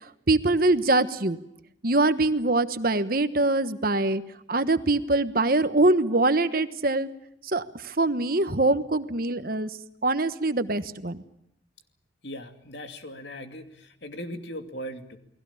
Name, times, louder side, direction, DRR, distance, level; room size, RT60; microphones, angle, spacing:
voice 1, 0.3-1.4 1.8-4.2 4.5-7.1 7.5-9.7 10.0-11.2, right 2 dB, 50° right, 11 dB, 1.2 m, -23 dB
voice 2, 12.2-15.2, equal, 65° left, 6 dB, 2.6 m, -39 dB
29.5 x 20.0 x 7.2 m, 0.81 s
head